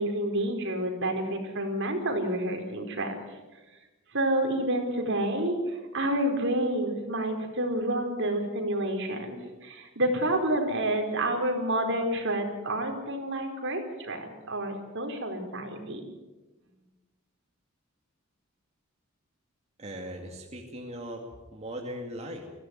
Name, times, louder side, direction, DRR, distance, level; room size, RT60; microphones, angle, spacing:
voice 1, 0.0-3.1 4.1-16.0, right 1 dB, 60° right, 3 dB, 4.7 m, -29 dB
voice 2, 19.8-21.2 21.5-22.4, right 1 dB, 30° right, 0 dB, 2.5 m, -39 dB
23.5 x 15.5 x 9.6 m, 1.2 s
head